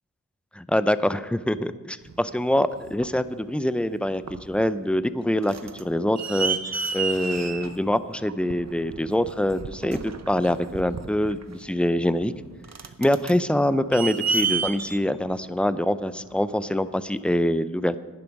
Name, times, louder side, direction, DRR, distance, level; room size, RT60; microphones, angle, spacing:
voice 1, 0.5-6.6 6.9-12.3 13.0-18.0, left 1 dB, 5° left, 13 dB, 0.4 m, -24 dB
sound 1, 2.1-3.2 3.8-4.0 4.2-4.8 5.1-16.5 17.3-17.4, right 5 dB, 50° right, 0.8 m, -32 dB
11.0 x 10.5 x 5.2 m, 1.3 s
wide cardioid pair, 80°, 34 cm